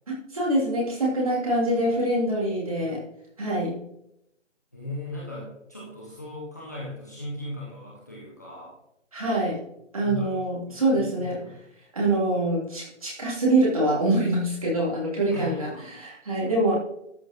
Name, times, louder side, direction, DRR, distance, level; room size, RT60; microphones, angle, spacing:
voice 1, 0.1-3.0 3.4-3.8 9.1-9.6 9.9-11.4 11.9-16.8, right 1 dB, 30° right, -5 dB, 3.4 m, -25 dB
voice 2, 4.7-8.7 10.0-10.3 10.7-11.5 15.3-15.8, left 1 dB, 15° left, -6 dB, 1.3 m, -38 dB
13.0 x 8.9 x 3.0 m, 0.81 s
figure-of-eight pair, 180°, 37 cm